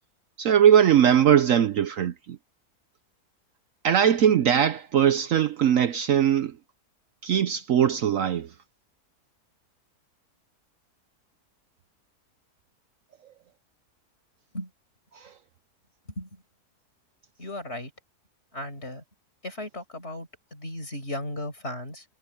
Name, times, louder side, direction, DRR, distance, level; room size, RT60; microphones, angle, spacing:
voice 1, 0.4-2.4 3.8-6.5 7.2-8.5 15.2-15.3, right 9 dB, 65° right, 1.0 m, -20 dB
voice 2, 17.4-17.9 18.5-19.0 19.4-22.1, left 1 dB, 40° left, 6.6 m, -36 dB
omnidirectional pair, 1.7 m